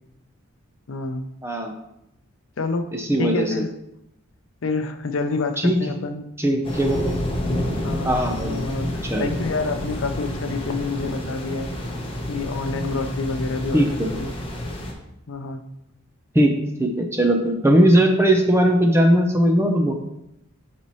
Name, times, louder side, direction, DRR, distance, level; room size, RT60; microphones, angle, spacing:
voice 1, 0.9-1.2 2.6-2.9 3.2-3.7 4.6-6.2 7.8-8.2 8.5-11.7 12.3-14.3 15.3-15.6, left 3 dB, 65° left, 8 dB, 0.5 m, -28 dB
voice 2, 1.4-1.7 2.9-3.5 5.6-5.8 6.4-7.0 8.0-8.5 9.0-9.3 13.7-14.1 16.3-16.5 16.8-19.9, right 1 dB, 10° right, 3 dB, 0.6 m, -19 dB
sound 1, 6.6-14.9, left 1 dB, 25° left, 0.9 m, -29 dB
9.6 x 4.3 x 3.1 m, 0.83 s
head